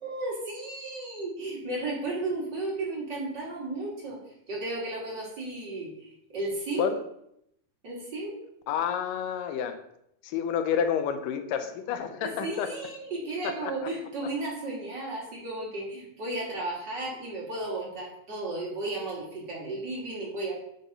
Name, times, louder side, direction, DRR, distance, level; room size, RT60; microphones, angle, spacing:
voice 1, 0.0-4.2 4.5-6.9 7.8-8.4 12.2-20.6, right 2 dB, 35° right, -5 dB, 2.5 m, -34 dB
voice 2, 8.7-9.8 10.2-12.7 13.6-13.7, left 8 dB, 85° left, 8 dB, 2.4 m, -29 dB
7.1 x 4.0 x 5.5 m, 0.76 s
omnidirectional pair, 3.7 m